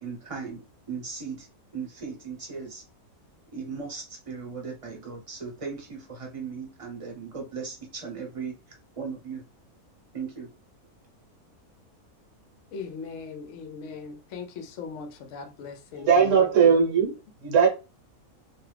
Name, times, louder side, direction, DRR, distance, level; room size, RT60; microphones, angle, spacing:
voice 1, 0.0-1.5 1.7-2.8 3.5-9.4 10.1-10.5, right 5 dB, 30° right, 0.7 m, -37 dB
voice 2, 12.7-16.7, left 5 dB, 65° left, 0.8 m, -39 dB
voice 3, 15.9-17.7, right 6 dB, 60° right, 1.1 m, -20 dB
2.6 x 2.3 x 3.2 m
omnidirectional pair, 1.6 m